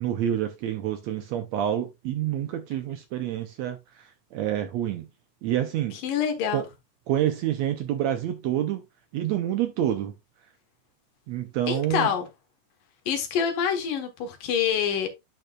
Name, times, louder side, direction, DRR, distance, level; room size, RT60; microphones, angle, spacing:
voice 1, 0.0-5.1 5.4-6.0 6.5-6.6 7.1-8.8 9.1-10.1 11.3-12.1, right 11 dB, 75° right, 1.7 m, -28 dB
voice 2, 6.0-6.6 11.7-12.3 13.1-15.1, left 8 dB, 80° left, 3.1 m, -26 dB
10.5 x 5.3 x 2.4 m
omnidirectional pair, 3.8 m